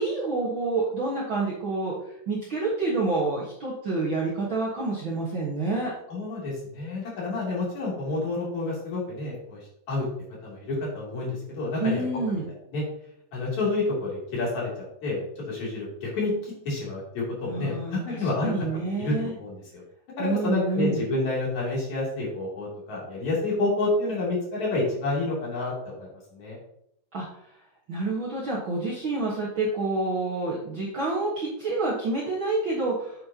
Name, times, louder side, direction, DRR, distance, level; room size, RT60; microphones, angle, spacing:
voice 1, 0.0-5.9 11.8-12.5 17.4-19.3 20.2-21.0 27.1-27.3 27.9-33.1, right 3 dB, 75° right, -5 dB, 1.1 m, -28 dB
voice 2, 6.1-9.6 9.9-10.1 10.4-12.1 12.7-12.8 13.3-14.7 15.0-19.8 20.2-26.6, left 2 dB, 50° left, -5 dB, 3.9 m, -29 dB
8.5 x 7.5 x 2.9 m, 0.74 s
omnidirectional pair, 4.6 m